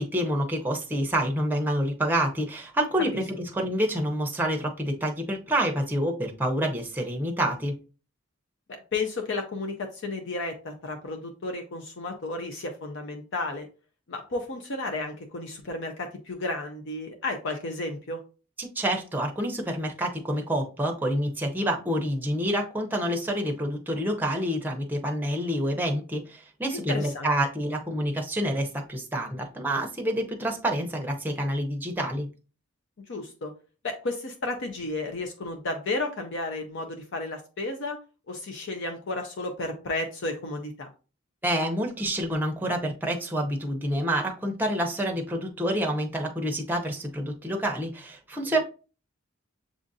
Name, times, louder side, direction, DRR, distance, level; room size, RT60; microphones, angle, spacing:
voice 1, 0.0-7.8 18.6-32.3 41.4-48.6, equal, 10° right, 2 dB, 0.6 m, -28 dB
voice 2, 8.9-13.7 14.1-18.2 26.7-27.3 33.1-33.5 33.8-38.0 38.3-40.9, left 2 dB, 60° left, 4 dB, 0.5 m, -33 dB
7.1 x 2.5 x 2.5 m, 0.34 s
head